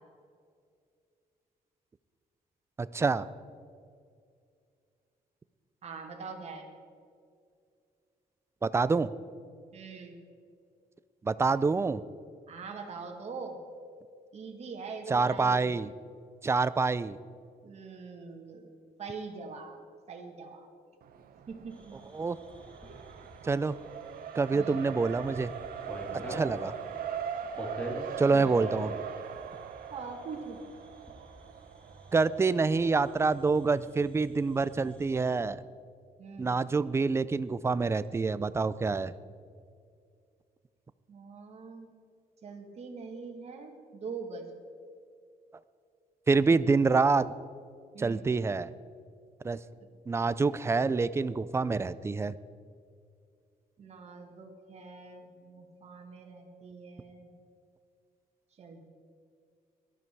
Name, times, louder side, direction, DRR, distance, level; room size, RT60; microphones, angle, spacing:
voice 1, 2.8-3.3 8.6-9.1 11.2-12.0 15.1-15.9 16.4-17.2 22.1-22.4 23.4-23.8 24.3-25.5 26.3-26.7 28.2-28.9 32.1-35.6 36.4-39.1 46.3-47.3 48.0-48.7 49.4-49.6 50.1-52.3, right 4 dB, 15° right, 16 dB, 0.4 m, -26 dB
voice 2, 5.8-6.7 9.7-10.2 12.5-13.6 14.3-15.9 17.6-18.7 19.0-19.8 20.1-20.7 21.5-22.0 24.5-24.9 26.1-26.5 28.3-28.6 29.9-30.6 36.2-36.5 41.1-41.9 42.4-44.4 47.9-48.4 53.8-57.3 58.6-58.9, right 4 dB, 45° right, 3 dB, 2.0 m, -43 dB
Race car auto racing, 21.0-33.6, right 8 dB, 70° right, 1.0 m, -41 dB
sound 1, 21.7-35.3, equal, 10° left, 2.5 m, -46 dB
18.0 x 12.5 x 4.6 m, 2.3 s
cardioid pair, 160°, 16 cm